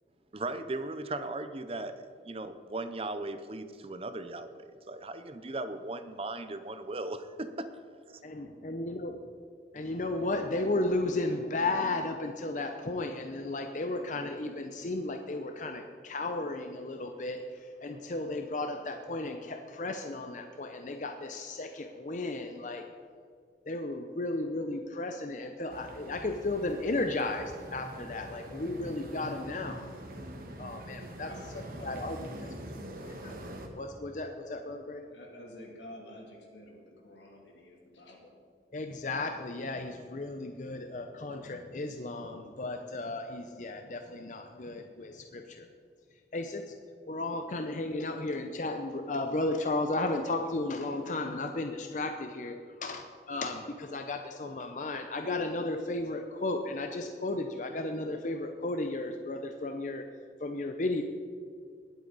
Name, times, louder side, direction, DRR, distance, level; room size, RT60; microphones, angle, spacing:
voice 1, 0.3-7.7, right 2 dB, 35° right, 11 dB, 0.6 m, -37 dB
voice 2, 8.2-9.1 9.7-22.9 23.7-29.8 30.6-31.3 31.8-32.5 33.2-33.3 33.8-35.1 38.7-45.7 46.3-46.7 47.1-60.0 60.4-61.0, left 2 dB, 45° left, 5 dB, 0.6 m, -34 dB
sound 1, 25.7-33.7, right 1 dB, 55° right, 1.5 m, -44 dB
voice 3, 31.1-33.4 35.1-38.3, left 1 dB, 85° left, -1 dB, 2.8 m, -51 dB
19.5 x 8.1 x 4.0 m, 2.2 s
head